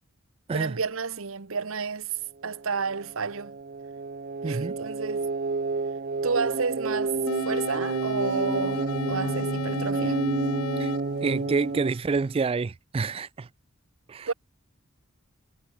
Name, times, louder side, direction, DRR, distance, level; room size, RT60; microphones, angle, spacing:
voice 1, 0.5-3.6 4.4-5.3 6.2-10.2 14.3-14.4, right 5 dB, 70° right, 1.1 m, -31 dB
sound 1, 2.5-11.9, right 3 dB, 45° right, 0.8 m, -30 dB
voice 2, 4.4-4.8 10.8-10.9 11.2-13.5 14.1-14.3, right 4 dB, 25° right, 0.3 m, -27 dB
sound 2, 7.3-12.3, left 4 dB, 85° left, 0.8 m, -35 dB
head